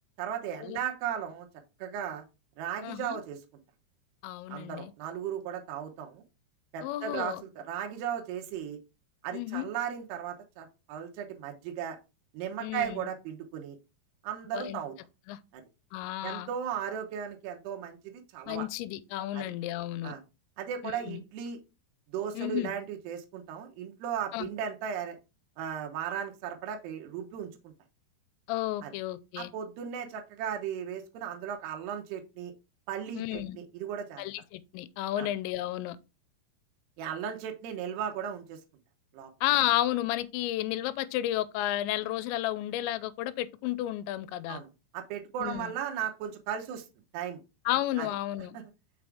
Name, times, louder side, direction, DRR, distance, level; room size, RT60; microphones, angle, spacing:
voice 1, 0.2-1.5 1.8-2.2 2.6-3.4 4.5-6.2 6.7-8.8 9.2-12.0 12.3-13.8 14.2-14.9 15.5-15.6 16.2-18.7 19.3-19.5 20.0-20.2 20.6-21.6 22.1-25.2 25.6-27.7 28.8-28.9 29.4-32.5 32.9-34.2 35.2-35.3 37.0-38.6 39.1-39.3 44.5-44.7 44.9-46.9 47.1-47.4 48.0-48.1 48.5-48.6, right 9 dB, 75° right, 3.0 m, -36 dB
voice 2, 2.8-3.2 4.2-4.9 6.8-7.4 9.3-9.7 12.6-13.1 14.5-14.8 15.3-15.4 15.9-16.5 18.5-20.2 20.8-21.2 22.4-22.7 24.3-24.5 28.5-29.5 33.1-33.6 34.2-36.0 39.4-44.6 45.4-45.7 47.7-48.6, left 14 dB, 90° left, 2.9 m, -32 dB
6.0 x 5.2 x 3.5 m
omnidirectional pair, 5.1 m